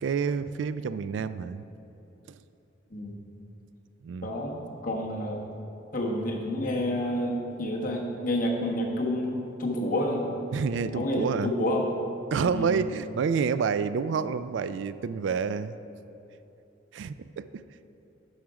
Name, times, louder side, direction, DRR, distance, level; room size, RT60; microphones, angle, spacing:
voice 1, 0.0-1.6 2.3-2.4 4.0-4.3 10.5-11.5 12.3-15.7 16.9-17.6, right 6 dB, 75° right, 14 dB, 0.3 m, -28 dB
voice 2, 4.2-5.4 5.9-10.3 10.9-11.9 12.5-12.7, left 1 dB, 45° left, -1 dB, 1.2 m, -29 dB
12.0 x 5.0 x 4.8 m, 3.0 s
head